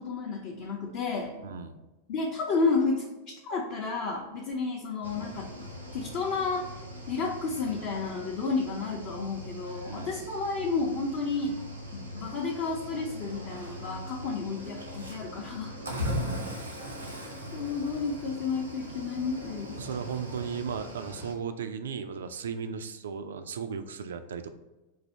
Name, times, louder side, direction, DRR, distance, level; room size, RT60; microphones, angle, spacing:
voice 1, 0.0-1.4 2.1-5.5 5.9-6.7 7.1-11.6 11.9-15.7 17.5-19.8, left 4 dB, 45° left, -3 dB, 0.6 m, -31 dB
voice 2, 1.4-1.8 9.9-10.2 14.2-14.4 15.9-16.4 19.8-24.5, right 6 dB, 65° right, 9 dB, 0.3 m, -36 dB
Cricket / Waves surf, 5.0-21.3, equal, 80° right, 0.8 m, -40 dB
4.0 x 2.7 x 4.3 m, 1.1 s
figure-of-eight pair, 90°, 0 cm